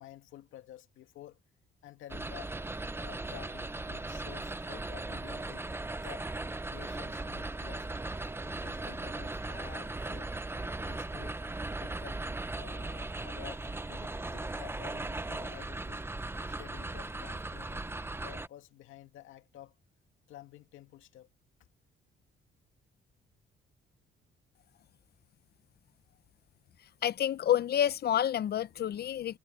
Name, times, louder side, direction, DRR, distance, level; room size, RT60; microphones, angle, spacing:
voice 1, 0.0-1.4 1.8-2.6 3.0-6.3 6.7-7.9 8.4-10.3 10.8-11.4 11.8-16.1 16.5-17.9 18.2-19.8 20.3-21.3, left 13 dB, 85° left, 2.2 m, -51 dB
sound 1, 2.1-18.5, right 2 dB, 10° right, 0.8 m, -38 dB
voice 2, 27.0-29.4, left 10 dB, 55° left, 0.7 m, -29 dB
cardioid pair, 90°, 20 cm